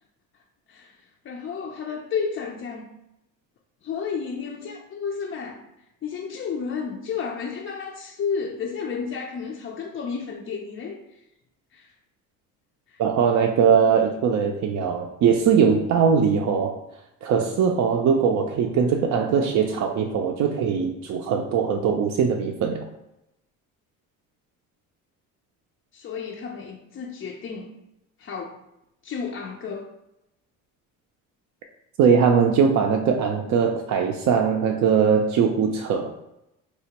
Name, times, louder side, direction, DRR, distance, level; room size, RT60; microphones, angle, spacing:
voice 1, 1.2-3.0 3.8-5.6 6.0-11.0 11.7-11.9 12.9-13.0 25.9-27.8 28.2-28.5 29.0-29.9, left 6 dB, 35° left, 0 dB, 0.4 m, -32 dB
voice 2, 13.0-16.8 17.2-22.9 32.0-36.1, right 6 dB, 50° right, 2 dB, 0.5 m, -21 dB
4.5 x 2.2 x 2.8 m, 0.88 s
supercardioid pair, 85°, 37 cm